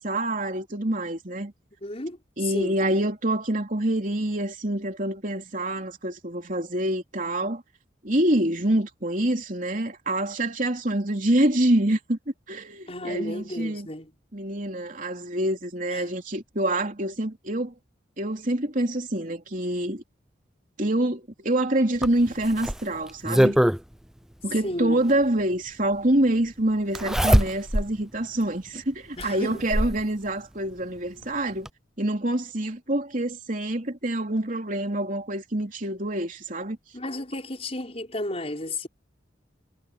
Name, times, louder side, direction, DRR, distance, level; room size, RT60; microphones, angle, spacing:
voice 1, 0.0-1.5 2.4-7.6 8.0-12.2 12.5-13.9 14.3-17.7 18.2-20.0 20.8-23.6 24.4-31.7 32.0-36.8, right 1 dB, 45° right, 3.3 m, -26 dB
voice 2, 1.8-2.8 12.9-14.1 15.9-16.1 24.6-25.0 29.2-29.6 36.9-38.9, left 1 dB, 35° left, 5.6 m, -33 dB
Zipper (clothing), 22.0-23.8 25.2-25.3 26.9-27.9 28.4-28.5 29.2-30.0 31.2-31.3 31.7-31.8, equal, 5° right, 0.4 m, -22 dB
head